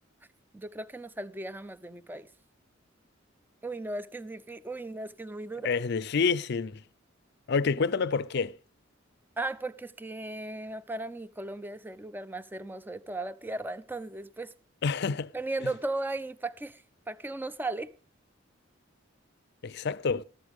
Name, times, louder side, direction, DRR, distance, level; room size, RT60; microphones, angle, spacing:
voice 1, 0.5-2.3 3.6-5.7 9.4-14.5 15.3-16.8 17.1-17.9, right 2 dB, 10° right, 0.5 m, -36 dB
voice 2, 5.6-6.8 7.5-8.6 14.8-15.3 15.6-15.7 19.6-20.2, left 5 dB, 60° left, 0.5 m, -28 dB
13.0 x 13.0 x 3.6 m
head